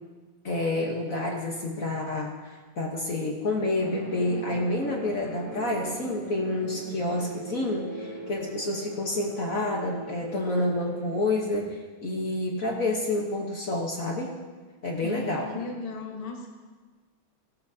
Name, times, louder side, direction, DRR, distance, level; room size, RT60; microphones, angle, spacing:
voice 1, 0.4-14.4 14.8-15.5, left 2 dB, 45° left, 0 dB, 1.4 m, -29 dB
sound 1, 3.8-11.4, right 1 dB, 10° right, 1.3 m, -40 dB
voice 2, 15.0-16.6, left 3 dB, 25° left, 0 dB, 1.0 m, -35 dB
16.5 x 12.0 x 2.8 m, 1.4 s
omnidirectional pair, 2.3 m